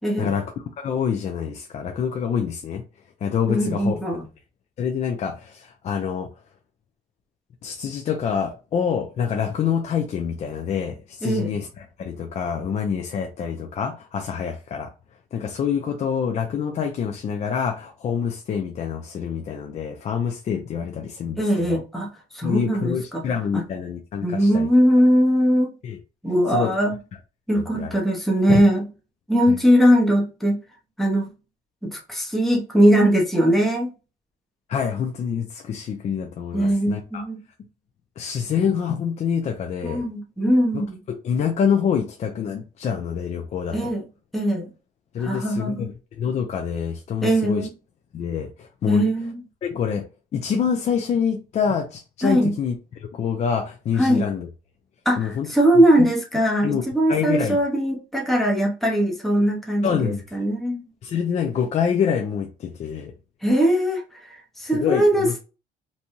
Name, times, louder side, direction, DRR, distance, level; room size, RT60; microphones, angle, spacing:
voice 1, 0.0-0.3 3.5-4.2 11.2-11.5 21.4-22.1 22.3-23.2 23.5-23.6 24.2-25.7 26.2-27.0 27.5-28.9 29.3-30.6 31.0-31.3 31.8-33.9 36.5-37.4 39.8-41.0 43.7-44.0 44.3-44.7 45.2-45.9 47.2-47.7 48.9-49.4 52.2-52.5 54.0-54.2 55.1-60.8 63.4-64.0 64.6-65.4, equal, ahead, 0.7 m, -20 dB
voice 2, 0.8-2.8 3.2-4.0 4.8-6.3 7.6-14.9 15.3-21.8 22.4-24.7 25.8-26.0 26.5-26.8 27.5-27.9 28.5-28.6 29.5-29.6 34.7-37.2 38.2-40.1 40.7-40.8 41.2-43.9 45.1-45.9 46.2-47.7 48.1-49.0 49.6-50.0 50.3-52.7 53.1-54.5 55.2-55.5 56.6-56.8 57.1-57.6 59.8-60.2 61.0-63.1 64.7-65.3, left 7 dB, 40° left, 0.4 m, -26 dB
2.7 x 2.2 x 3.0 m
cardioid pair, 110°, 17 cm